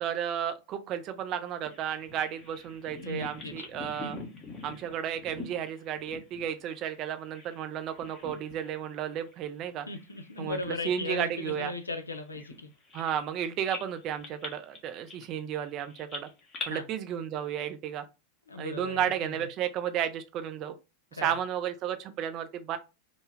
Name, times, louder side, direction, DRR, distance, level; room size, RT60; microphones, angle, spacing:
voice 1, 0.0-4.2 4.6-9.9 10.4-11.7 12.9-16.3 16.7-18.1 18.6-20.8 21.1-22.8, right 9 dB, 35° right, 0.4 m, -33 dB
Bird vocalization bird call bird song, 1.7-7.6 7.9-8.8 9.1-9.3 9.9-13.4 13.7-16.7, left 3 dB, 25° left, 0.7 m, -45 dB
voice 2, 3.0-3.5 9.9-12.7 16.7-16.9 18.5-19.4 21.2-21.4, left 3 dB, 75° left, 0.4 m, -37 dB
2.1 x 2.0 x 3.2 m
figure-of-eight pair, 90°, 0 cm